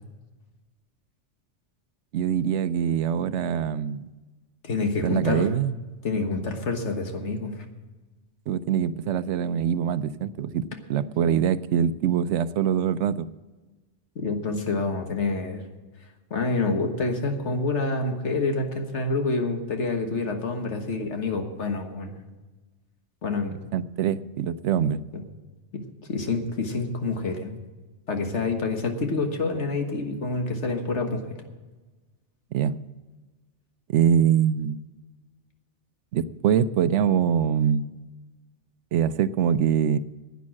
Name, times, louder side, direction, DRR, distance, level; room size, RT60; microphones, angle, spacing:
voice 1, 2.1-4.1 5.0-5.7 8.5-10.6 10.9-13.3 23.7-25.0 32.5-32.8 33.9-34.8 36.1-37.9 38.9-40.0, right 8 dB, 80° right, 14 dB, 0.9 m, -23 dB
voice 2, 4.6-5.6 6.0-7.6 14.2-15.6 16.3-22.1 23.2-23.6 25.1-25.2 25.7-27.5 28.1-31.2, left 3 dB, 75° left, 4 dB, 1.7 m, -27 dB
11.0 x 9.3 x 7.4 m, 1.2 s
omnidirectional pair, 1.2 m